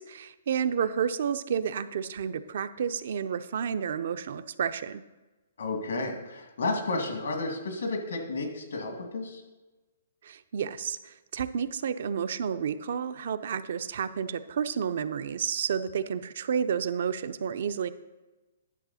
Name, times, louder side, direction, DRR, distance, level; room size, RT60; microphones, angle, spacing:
voice 1, 0.0-5.0 10.2-17.9, right 7 dB, 60° right, 12 dB, 0.5 m, -31 dB
voice 2, 5.6-9.4, left 2 dB, 85° left, 4 dB, 2.1 m, -32 dB
10.5 x 6.7 x 4.1 m, 1.1 s
hypercardioid pair, 145°, 0 cm